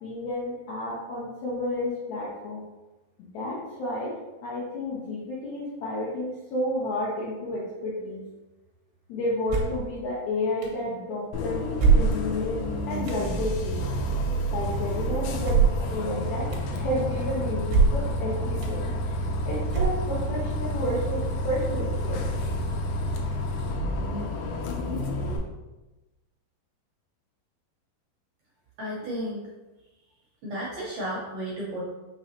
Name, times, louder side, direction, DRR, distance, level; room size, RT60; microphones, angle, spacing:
voice 1, 0.0-2.6 3.3-4.1 4.4-8.2 9.1-11.6 11.9-12.6 12.9-13.9 14.5-18.9 19.5-22.2, left 1 dB, 75° left, -6 dB, 1.8 m, -31 dB
sound 1, 9.5-9.9 10.6-10.7 11.8-12.5 13.1-13.2 15.4-15.9 16.5-16.6 17.7-18.1 18.6-18.7 19.7-20.3, right 5 dB, 85° right, 2.6 m, -22 dB
Bus, 11.3-25.4, equal, 90° left, 2.6 m, -29 dB
voice 2, 28.8-29.5 30.4-31.8, equal, 70° right, -5 dB, 1.8 m, -33 dB
6.0 x 3.1 x 2.8 m, 1.1 s
omnidirectional pair, 4.3 m